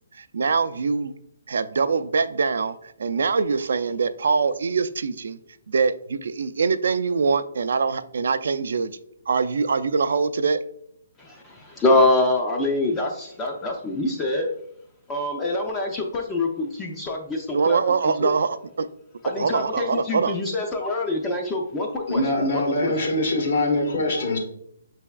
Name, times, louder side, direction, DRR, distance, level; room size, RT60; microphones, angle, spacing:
voice 1, 0.1-1.1 1.5-5.4 5.7-8.9 9.3-10.6 17.5-18.9 19.4-20.3, right 5 dB, 70° right, 12 dB, 0.3 m, -23 dB
voice 2, 11.2-14.5 15.1-18.3 19.2-22.2 22.5-22.9, left 2 dB, 15° left, 0 dB, 0.4 m, -25 dB
voice 3, 22.1-24.4, left 1 dB, 60° left, 0 dB, 1.2 m, -23 dB
5.4 x 3.4 x 2.3 m, 0.73 s
hypercardioid pair, 160°, 0 cm